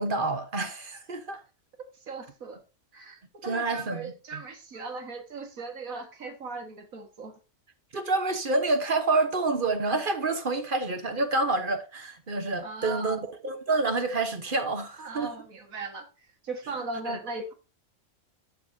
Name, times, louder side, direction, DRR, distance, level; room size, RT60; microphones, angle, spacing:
voice 1, 0.0-1.4 3.4-4.4 7.9-15.3 17.1-17.2, right 3 dB, 40° right, 1.2 m, -28 dB
voice 2, 1.9-2.6 2.9-7.3 12.6-13.2 15.0-17.5, right 3 dB, 70° right, 2.1 m, -38 dB
12.0 x 6.7 x 2.7 m
omnidirectional pair, 1.5 m